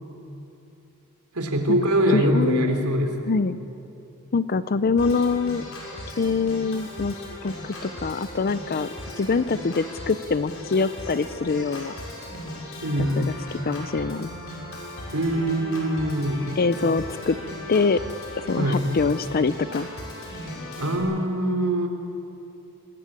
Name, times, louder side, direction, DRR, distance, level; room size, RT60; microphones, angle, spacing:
voice 1, 1.4-3.3 12.8-13.2 15.1-16.5 18.6-18.8 20.8-21.9, right 1 dB, 90° right, 4 dB, 3.4 m, -23 dB
voice 2, 2.1-2.9 3.3-3.6 4.3-5.6 6.2-7.1 7.4-7.5 7.8-8.9 9.2-12.0 13.0-13.4 13.7-14.3 16.6-17.4 17.7-18.0 18.4-19.9, left 4 dB, 45° left, 14 dB, 0.5 m, -24 dB
Organ, 5.0-21.0, left 1 dB, 70° left, 6.6 m, -37 dB
25.5 x 20.5 x 8.8 m, 2.9 s
head